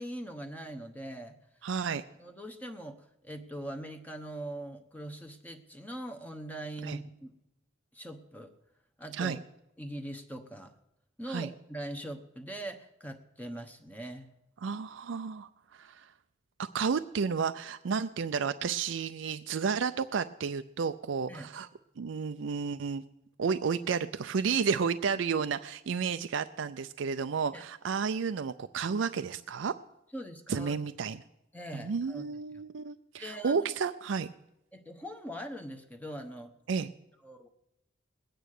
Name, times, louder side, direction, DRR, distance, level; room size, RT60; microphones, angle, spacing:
voice 1, 0.0-1.4 2.2-7.3 7.9-8.5 9.0-9.4 9.8-10.7 11.2-14.3 21.3-21.5 27.5-27.6 30.1-30.7 31.5-32.3 33.2-33.6 34.7-36.5 37.2-37.5, right 1 dB, 10° left, 5 dB, 0.9 m, -42 dB
voice 2, 1.6-2.0 6.8-7.0 9.1-9.4 11.3-11.5 14.6-16.1 16.7-21.7 22.0-23.0 23.4-29.7 30.5-31.2 31.7-34.3 36.7-36.9, right 5 dB, 65° right, 10 dB, 0.4 m, -32 dB
20.0 x 9.1 x 6.5 m, 0.86 s
head